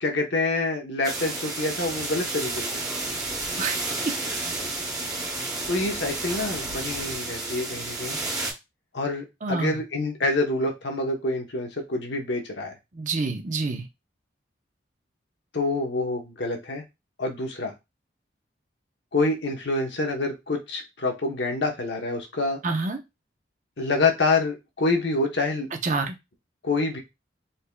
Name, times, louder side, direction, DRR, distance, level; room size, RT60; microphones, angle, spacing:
voice 1, 0.0-3.0 5.7-8.2 8.9-12.8 15.5-16.8 17.2-17.7 19.1-22.6 23.8-25.7 26.6-27.0, left 2 dB, 70° left, 2 dB, 0.9 m, -27 dB
sound 1, 1.0-8.5, right 2 dB, 20° right, 1.1 m, -31 dB
voice 2, 3.6-3.9 6.8-6.9 9.4-9.8 12.9-13.9 22.6-23.0 25.7-26.1, right 3 dB, 40° right, 4 dB, 0.7 m, -28 dB
4.1 x 3.4 x 2.2 m, 0.23 s
head